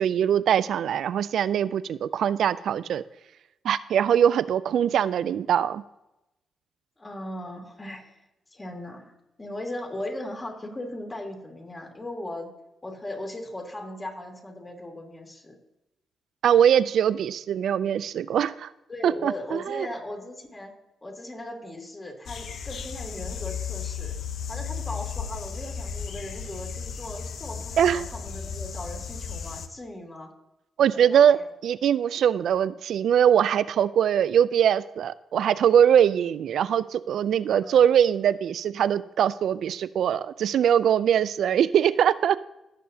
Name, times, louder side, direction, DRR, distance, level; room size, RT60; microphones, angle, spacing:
voice 1, 0.0-3.0 3.6-5.8 16.4-18.7 19.0-19.9 27.8-28.0 30.8-42.4, right 9 dB, 75° right, 16 dB, 0.4 m, -22 dB
voice 2, 7.0-8.2 8.5-9.1 9.4-12.5 12.8-15.6 18.9-20.7 21.0-24.1 24.5-30.3 30.8-31.5 37.6-37.9, left 1 dB, 30° left, 1 dB, 2.8 m, -38 dB
sound 1, 22.2-29.7, left 6 dB, 70° left, 0.7 m, -35 dB
17.0 x 6.7 x 2.8 m, 0.91 s
supercardioid pair, 55°, 0 cm